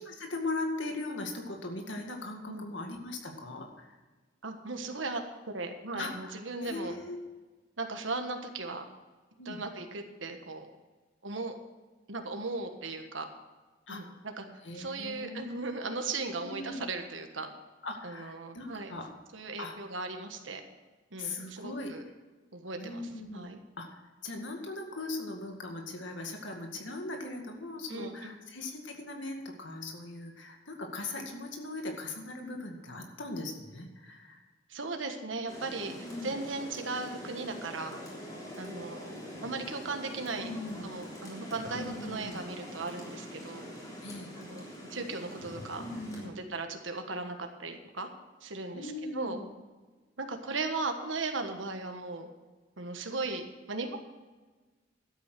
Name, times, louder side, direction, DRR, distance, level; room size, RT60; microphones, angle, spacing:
voice 1, 0.0-4.0 5.9-7.2 9.4-9.6 13.9-14.0 14.6-15.6 16.3-16.8 17.8-19.1 19.6-19.8 21.2-21.9 22.8-23.5 23.8-34.4 35.7-36.3 39.3-39.5 40.4-40.9 41.7-42.4 44.0-44.3 45.4-46.4 48.7-49.5, left 2 dB, 75° left, 2 dB, 2.0 m, -39 dB
voice 2, 4.4-5.2 5.5-7.0 7.8-8.9 9.4-10.7 11.2-11.5 12.1-13.3 13.9-14.4 14.7-17.5 18.0-19.0 19.3-20.6 21.1-22.0 22.5-23.6 27.9-28.3 34.7-38.0 38.6-40.5 40.8-43.7 44.4-45.9 46.2-48.1 48.4-49.4 50.2-52.3 52.8-54.0, right 3 dB, 85° right, 5 dB, 1.4 m, -37 dB
Rain, 35.5-46.3, equal, 20° left, 3.4 m, -44 dB
12.5 x 8.7 x 6.1 m, 1.3 s
head